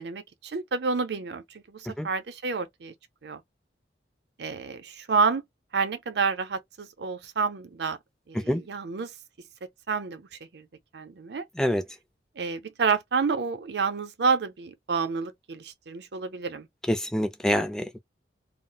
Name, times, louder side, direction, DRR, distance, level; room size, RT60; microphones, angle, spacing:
voice 1, 0.0-2.9 3.2-3.4 4.4-5.4 5.7-8.0 8.3-9.1 9.9-10.7 10.9-11.5 12.4-16.7, right 5 dB, 70° right, 0.6 m, -29 dB
voice 2, 16.9-18.0, equal, 5° left, 0.4 m, -26 dB
2.4 x 2.0 x 3.8 m
head